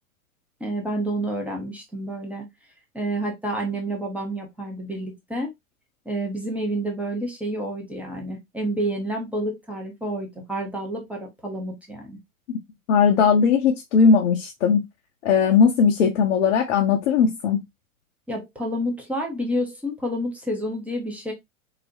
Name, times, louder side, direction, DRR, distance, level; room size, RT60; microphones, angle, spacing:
voice 1, 0.6-2.4 2.9-5.5 6.1-12.2 18.3-21.3, right 1 dB, 5° right, 0.5 m, -29 dB
voice 2, 12.9-14.8 15.2-17.6, left 6 dB, 55° left, 0.7 m, -18 dB
3.9 x 2.1 x 2.5 m
figure-of-eight pair, 95°, 43 cm